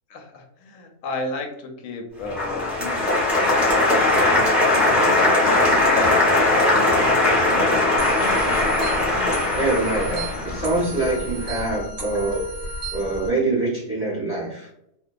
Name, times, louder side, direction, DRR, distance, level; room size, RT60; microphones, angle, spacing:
voice 1, 0.1-7.7 13.1-13.5, left 2 dB, 70° left, 3 dB, 0.9 m, -33 dB
Applause, 2.3-11.4, left 2 dB, ahead, 0.7 m, -19 dB
sound 1, 8.0-13.3, equal, 55° right, 0.9 m, -32 dB
voice 2, 9.5-12.4 12.9-14.7, right 2 dB, 20° right, -5 dB, 0.3 m, -25 dB
2.6 x 2.1 x 2.3 m, 0.77 s
omnidirectional pair, 1.7 m